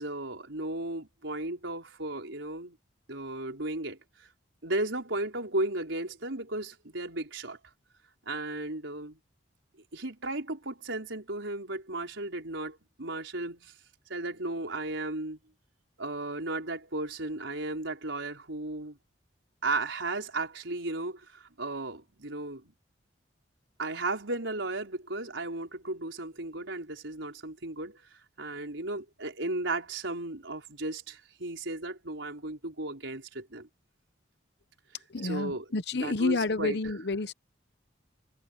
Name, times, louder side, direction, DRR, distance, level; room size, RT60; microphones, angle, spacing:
voice 1, 0.0-2.8 3.1-4.3 4.6-7.6 8.2-9.2 9.9-13.7 14.1-15.4 16.0-19.0 19.6-22.7 23.8-33.7 35.2-35.7 36.0-36.9, right 2 dB, 85° right, 4.8 m, -35 dB
voice 2, 35.1-37.3, left 3 dB, 60° left, 1.0 m, -29 dB
head